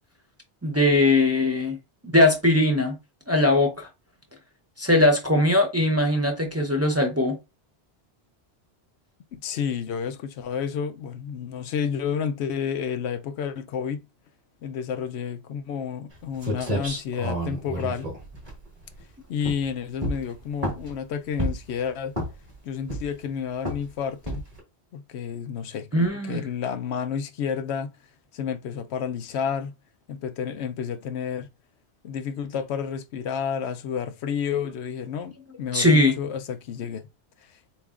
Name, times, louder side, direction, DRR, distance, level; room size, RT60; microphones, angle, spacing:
voice 1, 0.6-1.8 2.1-3.0 3.3-3.9 4.8-7.4 25.9-26.4 35.7-36.1, left 1 dB, 15° right, 0.6 m, -20 dB
voice 2, 9.3-14.0 14.6-18.1 19.3-22.1 22.6-24.4 24.9-27.9 28.3-29.7 30.1-31.5 32.0-37.0, left 7 dB, 75° left, 0.8 m, -30 dB
sound 1, 16.1-16.2 16.4-19.0 19.4-19.7 20.0-21.0 21.4-21.8 22.1-22.5 22.9-23.3 23.7-23.9 24.3-24.6, equal, 35° right, 2.0 m, -30 dB
6.9 x 2.7 x 2.4 m
omnidirectional pair, 1.1 m